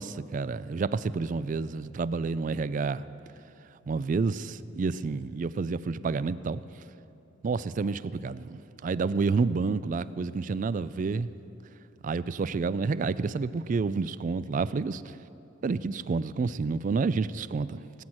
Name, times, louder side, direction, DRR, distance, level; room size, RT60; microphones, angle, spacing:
voice 1, 0.0-3.1 3.9-6.6 7.4-11.3 12.0-15.1 15.6-17.8, right 4 dB, 40° right, 17 dB, 0.3 m, -29 dB
18.0 x 8.8 x 6.2 m, 2.9 s
head